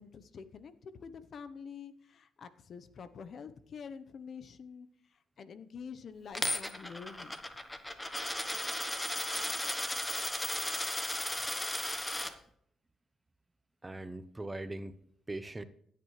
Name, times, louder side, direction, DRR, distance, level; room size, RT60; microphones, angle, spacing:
voice 1, 0.0-7.4, left 6 dB, 55° left, 13 dB, 0.9 m, -47 dB
Coin (dropping), 6.3-12.3, left 1 dB, 10° left, 1.2 m, -35 dB
voice 2, 13.8-15.0 15.3-15.6, right 2 dB, 15° right, 11 dB, 0.8 m, -41 dB
16.5 x 9.4 x 3.3 m, 0.66 s
cardioid pair, 90°, 0 cm